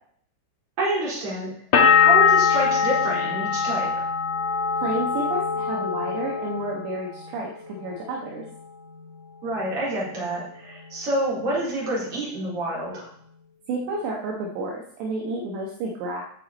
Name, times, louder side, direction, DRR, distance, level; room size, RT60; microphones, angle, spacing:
voice 1, 0.8-1.5 1.9-3.9 9.4-13.1, right 1 dB, 30° right, -6 dB, 4.5 m, -27 dB
sound 1, 1.7-7.4 7.7-8.4, left 6 dB, 65° left, 1.6 m, -22 dB
voice 2, 4.8-8.4 13.7-16.2, right 2 dB, 70° right, -1 dB, 3.3 m, -30 dB
15.0 x 7.0 x 4.1 m, 0.63 s
omnidirectional pair, 5.6 m